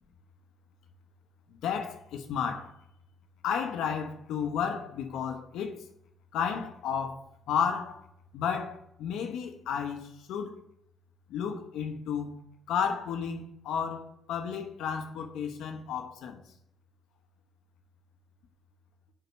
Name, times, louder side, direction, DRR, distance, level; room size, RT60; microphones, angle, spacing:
voice 1, 1.6-2.7 3.4-5.9 6.3-7.2 7.5-8.1 8.3-10.5 11.3-12.4 12.7-16.4, left 7 dB, 85° left, 0.9 m, -32 dB
6.7 x 5.7 x 6.1 m
cardioid pair, 90°, 0 cm